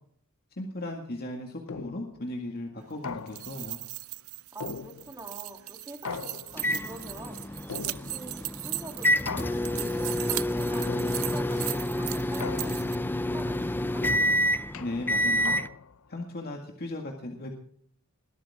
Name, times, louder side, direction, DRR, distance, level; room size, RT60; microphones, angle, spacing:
voice 1, 0.6-3.8 14.8-15.5 16.1-17.5, left 1 dB, 45° left, 2 dB, 2.0 m, -36 dB
sound 1, 1.7-2.2 3.0-3.7 4.6-5.4 6.0-6.8 7.7-8.4 9.3-10.0 10.9-11.5 12.4-13.1 14.0-16.1, left 5 dB, 70° left, 0.7 m, -40 dB
sound 2, 3.1-13.0, right 19 dB, 70° right, 0.6 m, -38 dB
voice 2, 4.5-14.0, right 1 dB, 15° right, 3 dB, 3.0 m, -45 dB
sound 3, 6.6-15.7, left 1 dB, 10° left, 0.5 m, -28 dB
20.5 x 12.5 x 3.7 m, 0.63 s
head